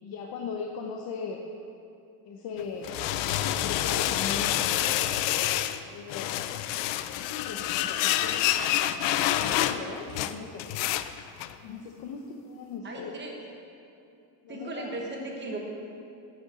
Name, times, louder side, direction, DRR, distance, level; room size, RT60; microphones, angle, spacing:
voice 1, 0.0-1.4 2.2-2.9 3.2-4.7 5.8-6.3 7.2-10.7 11.6-13.2 14.4-15.0, left 5 dB, 55° left, 1 dB, 0.9 m, -39 dB
sound 1, 2.6-5.8 6.1-11.5, left 13 dB, 75° left, 0.6 m, -27 dB
voice 2, 12.8-13.4 14.5-15.6, right 2 dB, 25° right, 0 dB, 1.2 m, -36 dB
8.6 x 7.8 x 7.9 m, 2.6 s
cardioid pair, 160°, 44 cm